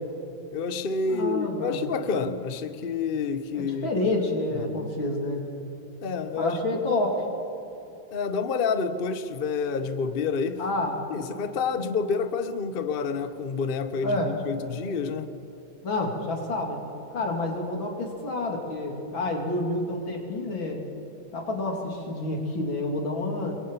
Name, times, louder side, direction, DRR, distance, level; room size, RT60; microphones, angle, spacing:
voice 1, 0.5-3.9 4.5-4.9 6.0-6.6 8.1-10.6 11.1-15.4, left 5 dB, 40° left, 10 dB, 0.9 m, -28 dB
voice 2, 1.1-1.9 3.6-5.4 6.4-7.2 10.6-11.1 14.0-14.3 15.8-16.8 17.1-20.8 21.3-23.6, left 2 dB, 85° left, 1 dB, 4.0 m, -28 dB
28.5 x 22.5 x 5.7 m, 2.9 s
omnidirectional pair, 2.1 m